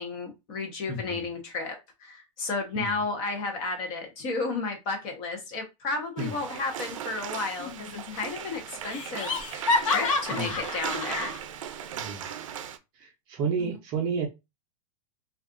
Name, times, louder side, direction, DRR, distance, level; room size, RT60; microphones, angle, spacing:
voice 1, 0.0-11.3 11.7-11.8 13.6-13.7, left 3 dB, 30° left, 3 dB, 0.7 m, -33 dB
voice 2, 0.9-1.3 2.7-2.9 6.2-6.4 10.3-10.6 11.9-12.3 13.0-14.3, right 5 dB, 25° right, 1 dB, 0.6 m, -31 dB
sound 1, 6.2-12.8, right 9 dB, 70° right, 0.5 m, -38 dB
Laughter, 7.6-8.1 8.4-8.5 8.9-11.4, left 3 dB, 70° left, 0.7 m, -29 dB
2.4 x 2.3 x 3.6 m, 0.24 s
supercardioid pair, 170°, 17 cm